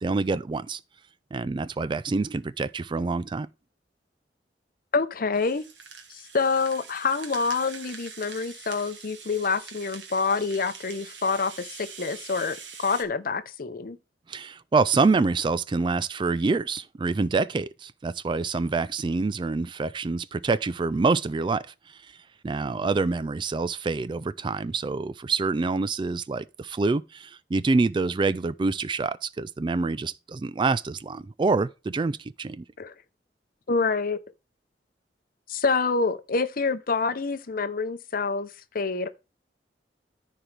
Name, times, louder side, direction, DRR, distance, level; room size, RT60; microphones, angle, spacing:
voice 1, 0.0-0.8 1.3-3.5 14.3-22.0 22.4-32.6, right 3 dB, 25° right, 0.3 m, -26 dB
voice 2, 4.9-5.6 6.1-14.0 32.8-32.9 33.7-34.2 35.5-38.5 38.7-39.1, left 4 dB, 55° left, 0.7 m, -27 dB
Rattle (instrument), 5.3-13.0, right 6 dB, 85° right, 1.8 m, -44 dB
13.5 x 4.7 x 3.3 m
head